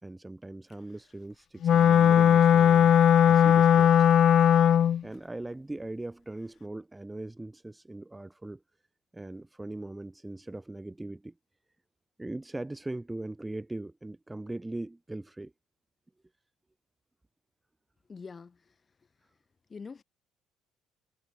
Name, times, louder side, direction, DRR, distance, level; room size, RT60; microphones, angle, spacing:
voice 1, 0.0-2.9 3.3-4.1 5.0-8.6 9.1-11.3 12.2-15.5, right 2 dB, 10° right, 2.2 m, -40 dB
Wind instrument woodwind instrument, 1.6-5.0, left 9 dB, 55° left, 0.4 m, -19 dB
voice 2, 18.1-18.6 19.7-20.0, left 5 dB, 30° left, 4.5 m, -43 dB
cardioid pair, 95°, 0 cm